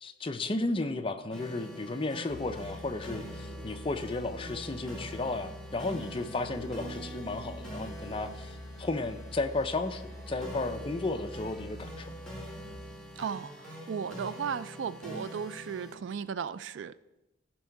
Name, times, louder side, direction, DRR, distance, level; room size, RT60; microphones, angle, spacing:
voice 1, 0.0-12.2, left 2 dB, 25° left, 0.5 m, -34 dB
sound 1, 1.3-15.9, equal, 5° left, 2.0 m, -45 dB
Musical instrument, 2.3-13.1, equal, 45° right, 2.6 m, -45 dB
voice 2, 13.2-17.0, right 7 dB, 65° right, 0.3 m, -36 dB
15.0 x 5.3 x 4.6 m
head